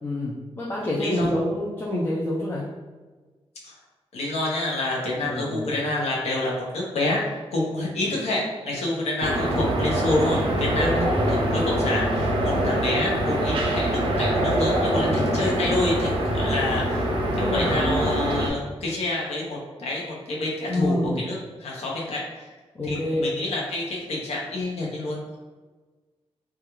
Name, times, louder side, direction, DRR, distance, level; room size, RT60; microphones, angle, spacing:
voice 1, 0.0-2.6 5.2-5.7 10.6-11.1 14.8-15.3 17.3-17.9 20.7-21.2 22.7-23.3, left 1 dB, 20° left, -6 dB, 0.3 m, -27 dB
voice 2, 4.1-7.2 7.5-11.0 11.5-17.1 17.4-22.2 22.8-25.4, left 2 dB, 80° left, -3 dB, 0.7 m, -28 dB
sound 1, 9.2-18.5, right 1 dB, 55° right, 0.4 m, -24 dB
2.3 x 2.2 x 2.9 m, 1.3 s
wide cardioid pair, 155°, 11 cm